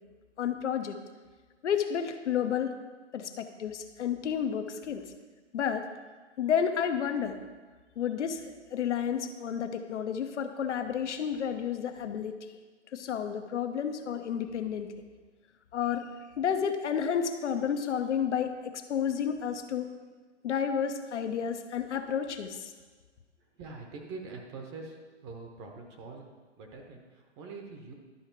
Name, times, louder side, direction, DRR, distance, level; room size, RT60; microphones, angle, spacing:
voice 1, 0.4-1.0 1.6-2.8 3.1-5.1 5.5-5.9 6.4-7.4 8.0-12.4 12.9-14.9 15.7-16.1 16.4-19.9 20.4-22.7, left 8 dB, 75° left, 7 dB, 0.9 m, -31 dB
voice 2, 23.6-25.0 25.2-27.9, right 4 dB, 25° right, 2 dB, 0.8 m, -44 dB
11.5 x 4.8 x 4.5 m, 1.4 s
hypercardioid pair, 145°, 36 cm